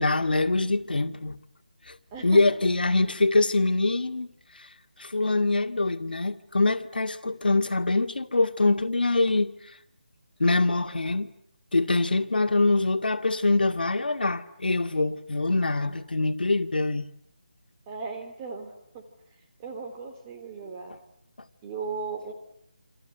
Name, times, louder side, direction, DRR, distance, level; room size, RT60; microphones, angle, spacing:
voice 1, 0.0-1.4 1.9-2.0 2.2-4.3 4.5-4.7 5.0-9.8 10.4-11.3 11.7-17.1, left 2 dB, 80° left, 2.1 m, -24 dB
voice 2, 17.9-19.0 19.6-21.0 21.6-22.3, right 4 dB, 15° right, 3.5 m, -36 dB
28.5 x 26.0 x 8.0 m
figure-of-eight pair, 170°, 5 cm